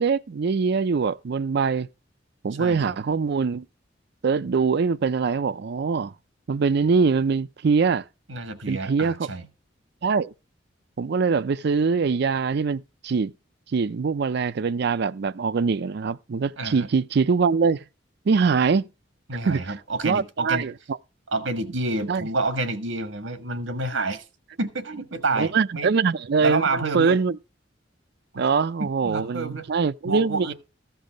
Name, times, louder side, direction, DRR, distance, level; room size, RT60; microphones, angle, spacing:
voice 1, 0.0-1.9 2.4-3.6 4.2-6.1 6.5-8.0 8.7-9.3 10.0-10.3 11.0-13.3 13.7-17.8 18.3-18.8 19.5-19.6 20.0-20.7 22.1-22.3 25.4-27.4 28.4-30.5, right 5 dB, 60° right, 0.4 m, -23 dB
voice 2, 2.6-3.0 8.3-9.5 16.6-16.9 19.3-20.7 21.3-24.2 24.6-25.9 26.4-27.2 28.8-29.6 30.1-30.5, right 2 dB, 80° right, 1.6 m, -28 dB
14.0 x 5.6 x 5.1 m
head